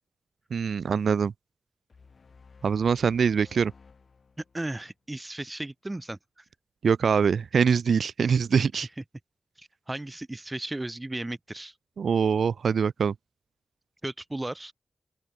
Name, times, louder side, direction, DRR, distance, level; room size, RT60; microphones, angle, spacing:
voice 1, 0.5-1.3 2.6-3.7 6.8-8.9 12.0-13.1, right 6 dB, 80° right, 0.7 m, -23 dB
sound 1, 1.9-5.2, left 5 dB, 55° left, 4.4 m, -55 dB
voice 2, 4.5-6.4 9.6-11.7 14.0-14.7, right 2 dB, 20° right, 1.4 m, -35 dB
open air
wide cardioid pair, 100°, 0 cm